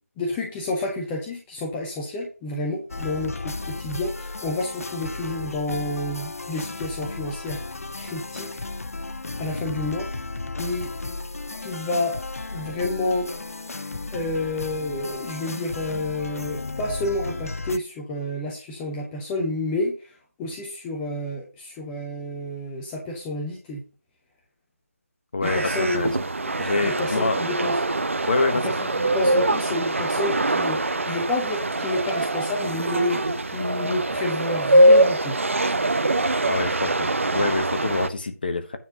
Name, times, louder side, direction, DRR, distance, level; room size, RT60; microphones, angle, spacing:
voice 1, 0.2-8.5 9.4-10.1 10.6-10.9 11.6-12.1 12.5-13.3 14.1-20.1 20.4-23.8 25.4-26.1 26.8-27.8 28.5-28.6 29.1-35.4, left 2 dB, 5° left, -1 dB, 0.5 m, -29 dB
sound 1, 2.9-17.8, left 3 dB, 65° left, 0.5 m, -34 dB
voice 2, 25.3-26.1 26.6-27.4 28.3-28.7 36.5-38.8, left 3 dB, 35° left, 8 dB, 1.0 m, -26 dB
sound 2, 25.4-38.1, right 1 dB, 55° right, 0.8 m, -23 dB
9.3 x 4.2 x 5.6 m, 0.35 s
figure-of-eight pair, 165°, 8 cm